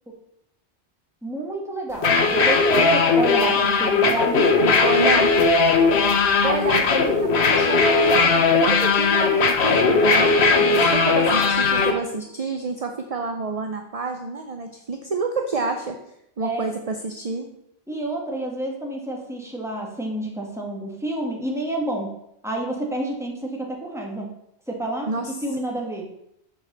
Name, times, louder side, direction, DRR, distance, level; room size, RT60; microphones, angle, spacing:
voice 1, 1.2-5.0 16.4-16.7 17.9-22.1 22.4-24.3 24.7-25.1 25.4-26.1, right 1 dB, 5° right, -1 dB, 1.5 m, -29 dB
sound 1, 1.9-11.9, left 4 dB, 85° left, 1.2 m, -18 dB
voice 2, 4.6-5.3 6.1-16.0 16.4-17.5 25.1-25.3, right 3 dB, 40° right, 4 dB, 0.7 m, -29 dB
6.8 x 4.8 x 6.7 m, 0.79 s
omnidirectional pair, 1.1 m